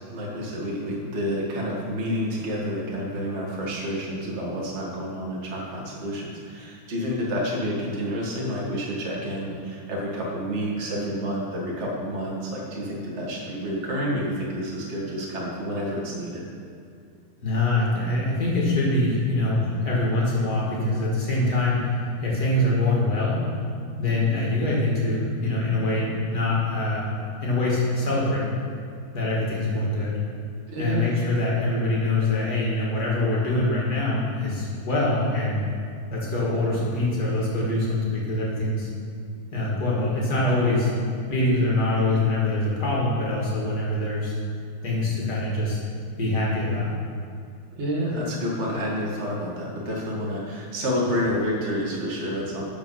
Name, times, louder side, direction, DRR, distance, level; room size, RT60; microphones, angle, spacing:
voice 1, 0.1-16.4 30.7-31.1 47.8-52.6, equal, 35° right, -3 dB, 1.7 m, -29 dB
voice 2, 17.4-22.0 22.2-23.4 24.0-27.1 27.4-28.5 29.1-30.2 30.8-35.6 36.1-38.9 39.5-40.9 41.3-44.3 44.8-45.8 46.2-46.9, left 2 dB, 45° left, -5 dB, 2.7 m, -24 dB
12.0 x 5.3 x 5.5 m, 2.3 s
omnidirectional pair, 2.3 m